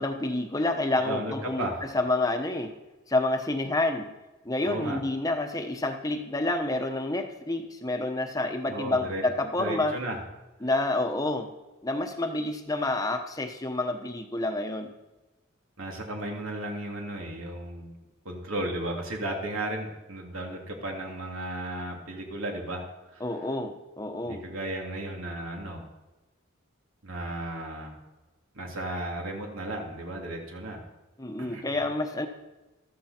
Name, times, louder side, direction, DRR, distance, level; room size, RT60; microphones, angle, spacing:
voice 1, 0.0-2.7 3.1-4.1 4.4-10.0 10.6-11.5 11.8-14.9 23.2-24.5 31.2-32.3, left 2 dB, 15° left, 5 dB, 0.9 m, -29 dB
voice 2, 1.1-1.8 4.6-5.0 8.7-9.2 9.6-10.2 15.8-17.9 18.2-22.9 23.1-23.2 24.2-25.8 27.0-28.0 28.5-30.8 31.4-31.6, right 1 dB, 90° right, 0 dB, 3.1 m, -34 dB
13.5 x 13.0 x 4.4 m, 1.1 s
head